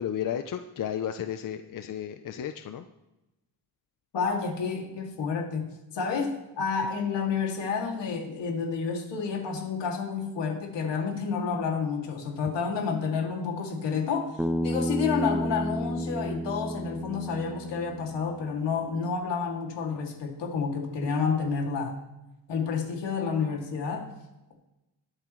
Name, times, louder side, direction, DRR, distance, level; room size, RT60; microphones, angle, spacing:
voice 1, 0.0-2.9, left 9 dB, 50° left, 8 dB, 0.6 m, -33 dB
voice 2, 4.1-5.6 5.9-21.9 22.5-24.1, left 5 dB, 80° left, 0 dB, 2.6 m, -30 dB
Bass guitar, 14.4-18.6, equal, ahead, 0.4 m, -31 dB
21.0 x 8.7 x 3.2 m, 0.98 s
cardioid pair, 115°, 42 cm